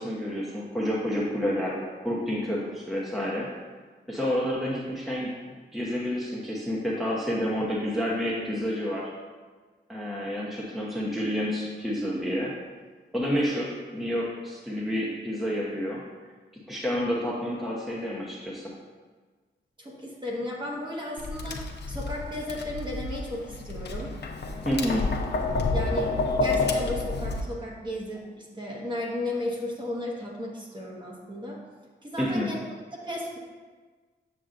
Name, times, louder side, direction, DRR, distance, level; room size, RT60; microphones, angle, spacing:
voice 1, 0.0-3.5 4.1-5.3 5.7-9.1 9.9-12.5 13.1-16.0 16.7-18.7 24.6-25.0 32.2-32.5, equal, ahead, -5 dB, 0.9 m, -29 dB
voice 2, 19.8-24.1 24.8-25.1 25.6-31.6 32.0-32.6 33.0-33.4, left 1 dB, 25° right, -3 dB, 1.3 m, -34 dB
Tap, 21.2-27.4, left 3 dB, 65° left, 0.7 m, -29 dB
7.4 x 6.8 x 2.6 m, 1.4 s
wide cardioid pair, 120°, 19 cm